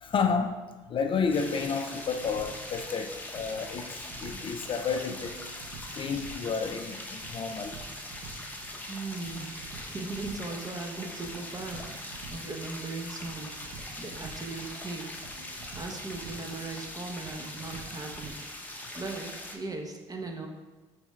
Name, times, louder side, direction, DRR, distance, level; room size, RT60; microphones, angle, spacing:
voice 1, 0.0-0.6 0.9-5.4 5.9-7.8, left 5 dB, 40° left, 6 dB, 0.4 m, -31 dB
sound 1, 1.3-19.6, left 1 dB, 15° left, 0.8 m, -42 dB
sound 2, 2.2-18.3, right 4 dB, 70° right, 0.6 m, -49 dB
voice 2, 8.9-15.1 15.7-18.4 19.0-20.5, right 3 dB, 30° right, 3 dB, 0.8 m, -38 dB
6.9 x 3.3 x 2.3 m, 1.2 s
hypercardioid pair, 60°, 13 cm